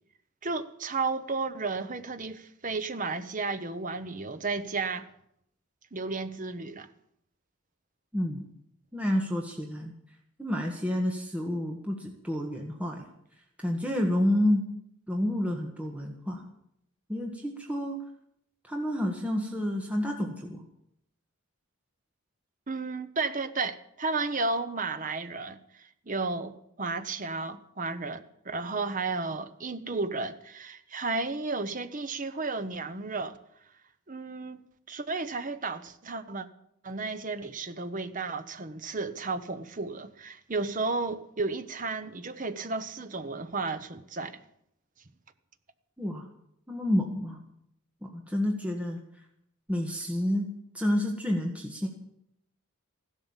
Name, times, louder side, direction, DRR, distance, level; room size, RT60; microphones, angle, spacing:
voice 1, 0.4-5.1 5.9-6.9 22.7-33.4 34.1-34.6 34.9-36.5 36.8-44.4, right 3 dB, 35° right, 0.9 m, -33 dB
voice 2, 8.1-8.5 8.9-9.9 10.4-13.0 13.6-14.7 15.1-16.4 17.1-18.0 18.7-20.6 46.0-46.2 46.7-47.4 48.0-49.0 49.7-50.5 50.7-51.9, left 1 dB, 5° right, 1.5 m, -29 dB
15.5 x 12.0 x 7.3 m
head